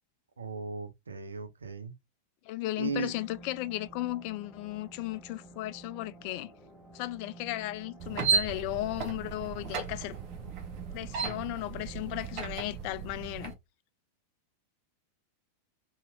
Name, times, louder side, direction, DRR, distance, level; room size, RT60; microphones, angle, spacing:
voice 1, 0.4-1.9 2.8-3.1, right 4 dB, 75° right, 0.5 m, -36 dB
voice 2, 2.4-6.5 6.9-10.2 10.9-13.5, left 17 dB, 45° left, 0.3 m, -35 dB
sound 1, 2.8-12.8, right 2 dB, ahead, 0.9 m, -52 dB
sound 2, 8.0-13.5, right 5 dB, 40° right, 0.8 m, -34 dB
2.8 x 2.8 x 2.5 m
figure-of-eight pair, 90°, 0 cm